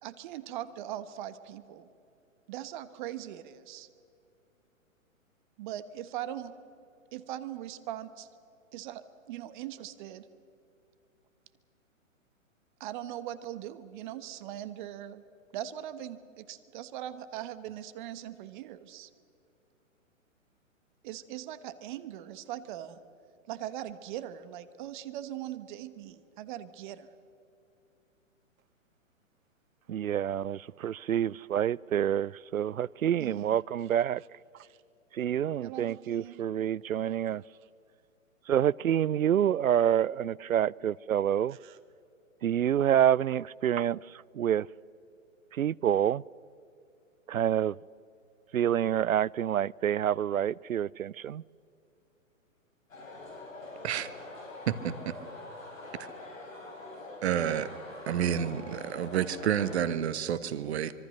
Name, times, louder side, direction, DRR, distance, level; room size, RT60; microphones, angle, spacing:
voice 1, 0.0-1.9 2.5-3.9 5.6-6.5 7.1-8.3 8.7-10.3 12.8-15.2 15.5-19.1 21.0-23.0 23.5-27.1 33.2-33.6 34.6-34.8 35.5-36.5 37.0-37.2 37.6-37.7 41.5-41.8, right 12 dB, 35° right, 1.3 m, -40 dB
voice 2, 29.9-34.2 35.1-37.4 38.5-41.6 42.4-44.0 44.3-44.7 45.5-46.2 47.3-47.8 48.5-51.4, right 10 dB, 90° right, 0.5 m, -27 dB
sound 1, 52.9-59.8, left 2 dB, 75° left, 7.8 m, -44 dB
voice 3, 54.7-55.1 57.2-57.7 58.1-60.9, right 9 dB, 50° right, 1.4 m, -29 dB
25.5 x 23.5 x 6.6 m
hypercardioid pair, 125°, 40 cm